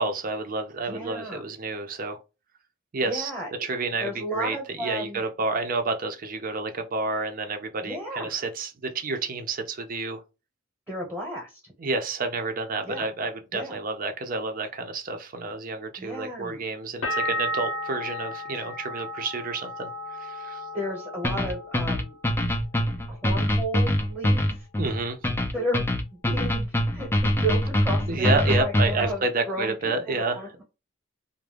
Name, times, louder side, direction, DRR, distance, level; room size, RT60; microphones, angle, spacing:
voice 1, 0.0-2.2 2.9-3.3 3.6-10.2 11.8-19.9 20.2-20.6 24.8-25.2 28.1-30.4, right 3 dB, 45° right, 0.5 m, -29 dB
voice 2, 0.8-1.4 3.0-3.6 4.0-5.2 7.8-8.4 10.9-11.7 12.9-13.1 13.5-13.8 16.0-16.6 20.7-22.1 23.1-24.7 25.5-25.8 26.1-30.6, right 1 dB, 5° right, 0.9 m, -33 dB
sound 1, 17.0-22.7 23.0-23.7, left 1 dB, 90° left, 0.9 m, -34 dB
sound 2, 21.2-29.1, left 1 dB, 10° left, 0.4 m, -24 dB
2.4 x 2.1 x 3.2 m
head